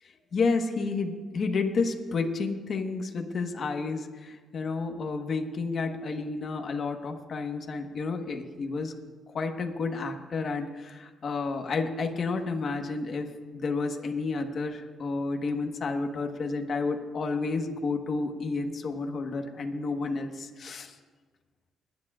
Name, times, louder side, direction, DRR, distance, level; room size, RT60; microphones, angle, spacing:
voice 1, 0.3-8.9 9.3-13.3 13.5-20.9, left 4 dB, 50° left, 4 dB, 1.2 m, -31 dB
30.0 x 10.5 x 2.4 m, 1.4 s
cardioid pair, 90°, 0 cm